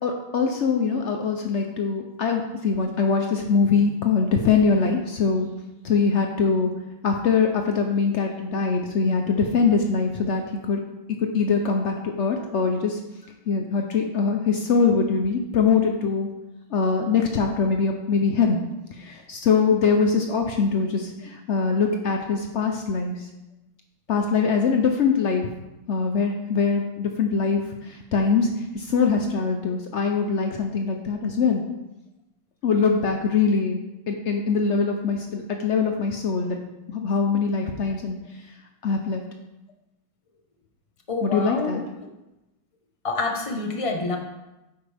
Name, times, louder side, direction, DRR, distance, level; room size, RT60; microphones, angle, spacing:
voice 1, 0.0-5.5 5.8-6.7 7.0-10.8 11.1-13.0 13.5-16.3 16.7-18.6 18.9-23.3 24.1-25.5 25.9-31.6 32.6-36.6 36.9-38.2 38.8-39.2 41.2-41.8, left 5 dB, 85° left, 3 dB, 0.6 m, -23 dB
voice 2, 41.1-41.8 43.0-44.2, left 3 dB, 25° left, 2 dB, 0.8 m, -27 dB
10.0 x 8.1 x 3.4 m, 0.98 s
omnidirectional pair, 2.2 m